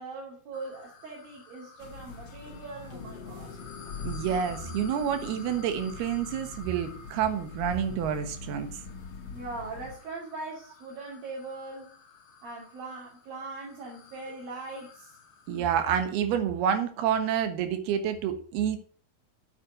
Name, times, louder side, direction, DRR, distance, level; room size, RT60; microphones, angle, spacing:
voice 1, 0.0-3.6 9.3-11.9 12.4-15.1 15.5-15.7, right 3 dB, 65° right, 4.3 m, -41 dB
sound 1, 0.5-16.2, left 5 dB, 65° left, 3.2 m, -52 dB
sound 2, 1.8-9.9, left 5 dB, 45° left, 2.5 m, -43 dB
sound 3, 2.9-7.5, left 7 dB, 90° left, 1.3 m, -48 dB
voice 2, 4.0-8.8 15.5-18.8, right 8 dB, 85° right, 3.3 m, -28 dB
8.6 x 8.4 x 6.3 m
omnidirectional pair, 4.4 m